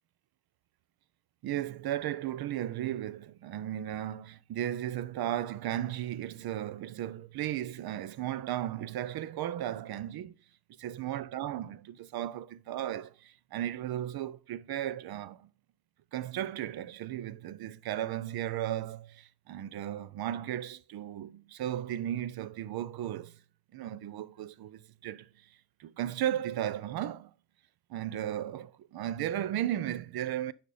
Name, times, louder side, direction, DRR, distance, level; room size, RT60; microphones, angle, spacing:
voice 1, 1.4-10.3 10.8-15.5 16.1-23.4 23.7-27.3 27.9-30.5, right 12 dB, 60° right, 0.6 m, -35 dB
6.4 x 5.1 x 5.4 m
hypercardioid pair, 45°, 43 cm